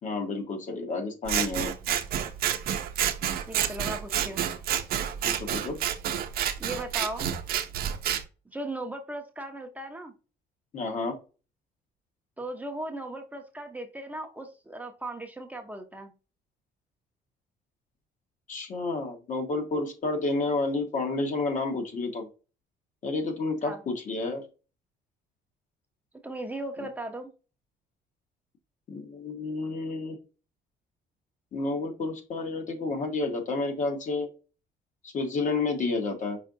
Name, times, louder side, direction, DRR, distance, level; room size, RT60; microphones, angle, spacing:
voice 1, 0.0-1.7 5.2-5.8 10.7-11.1 18.5-22.3 23.0-24.4 28.9-30.2 31.5-34.3 35.0-36.4, left 3 dB, 45° left, 4 dB, 1.3 m, -30 dB
Scissors, 1.3-8.2, right 10 dB, 65° right, 0.6 m, -29 dB
voice 2, 3.5-4.4 6.6-7.3 8.5-10.1 12.4-16.1 23.6-23.8 26.2-27.3, right 1 dB, 10° right, 3 dB, 0.7 m, -37 dB
5.5 x 3.6 x 2.5 m, 0.33 s
cardioid pair, 110°, 17 cm